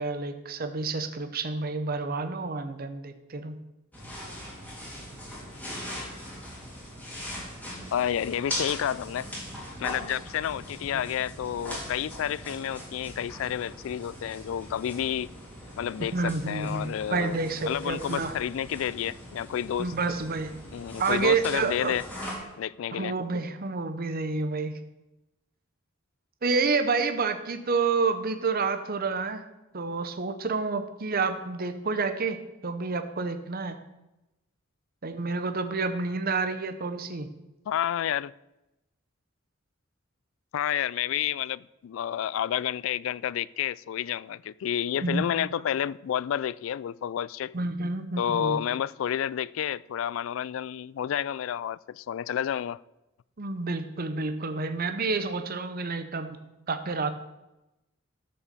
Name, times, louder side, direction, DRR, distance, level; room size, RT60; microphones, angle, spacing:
voice 1, 0.0-3.5 16.1-18.3 19.8-20.5 21.0-22.0 22.9-24.7 26.4-29.4 29.7-33.8 35.0-37.3 45.0-45.6 47.5-48.6 53.4-56.4 56.7-57.1, right 4 dB, 50° right, 0.8 m, -29 dB
sound 1, 3.9-22.3, equal, 10° left, 3.2 m, -40 dB
voice 2, 7.9-9.3 9.8-15.3 15.8-17.4 17.6-19.9 20.7-22.0 22.6-23.1 37.7-38.3 40.5-47.5 48.2-52.8, left 9 dB, 70° left, 0.3 m, -30 dB
12.5 x 5.6 x 6.8 m
head